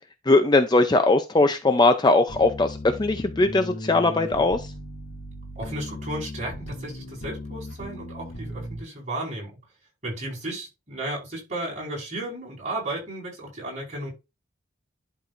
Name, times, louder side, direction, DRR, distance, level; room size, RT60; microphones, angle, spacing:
voice 1, 0.3-4.6, left 2 dB, 20° left, 0.5 m, -20 dB
sound 1, 2.3-8.8, left 1 dB, 90° left, 3.0 m, -37 dB
voice 2, 5.5-9.6 10.0-14.1, right 1 dB, 35° right, 4.9 m, -34 dB
11.0 x 4.6 x 2.5 m
head